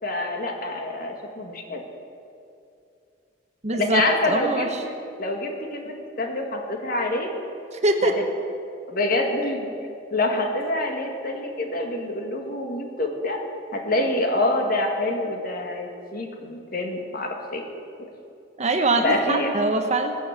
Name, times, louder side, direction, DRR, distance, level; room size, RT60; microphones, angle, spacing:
voice 1, 0.0-1.8 3.7-7.3 8.0-8.1 8.9-9.7 10.1-13.4 13.7-17.6 18.0-18.1 19.0-19.5, left 2 dB, 55° left, 3 dB, 2.0 m, -26 dB
voice 2, 3.6-4.7 7.7-8.1 18.6-20.2, right 2 dB, 40° right, 5 dB, 1.2 m, -23 dB
19.5 x 7.1 x 8.2 m, 2.5 s
head